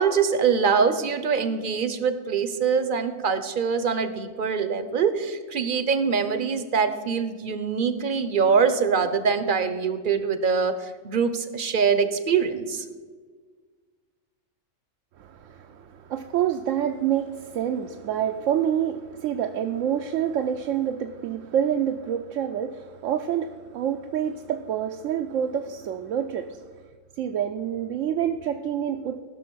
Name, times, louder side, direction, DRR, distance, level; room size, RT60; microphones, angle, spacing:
voice 1, 0.0-12.9, right 6 dB, 45° right, 11 dB, 0.8 m, -24 dB
voice 2, 15.2-26.6 27.2-29.2, right 9 dB, 75° right, 5 dB, 0.9 m, -27 dB
14.5 x 6.1 x 6.2 m, 1.5 s
omnidirectional pair, 1.4 m